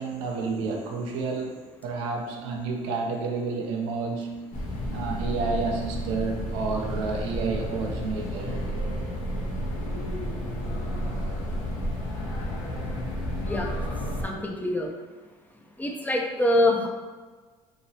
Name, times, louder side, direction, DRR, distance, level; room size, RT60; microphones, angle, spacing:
voice 1, 0.0-4.5 4.9-8.7, right 4 dB, 85° right, 1 dB, 0.5 m, -30 dB
sound 1, 4.5-14.2, equal, 60° left, 0.8 m, -31 dB
voice 2, 14.2-14.9 15.8-16.9, left 1 dB, 10° left, 0 dB, 0.5 m, -24 dB
2.9 x 2.8 x 2.7 m, 1.4 s
supercardioid pair, 75°, 14 cm